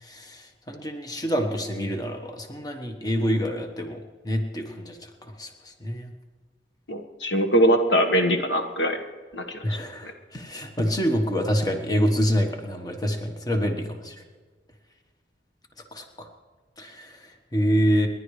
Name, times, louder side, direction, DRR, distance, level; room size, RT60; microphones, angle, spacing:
voice 1, 0.0-6.1 9.6-14.2 15.9-16.3 16.8-18.1, equal, 20° left, 4 dB, 1.3 m, -27 dB
voice 2, 6.9-9.0 9.3-9.6, equal, 75° left, 5 dB, 1.5 m, -22 dB
29.5 x 11.0 x 3.3 m, 1.5 s
head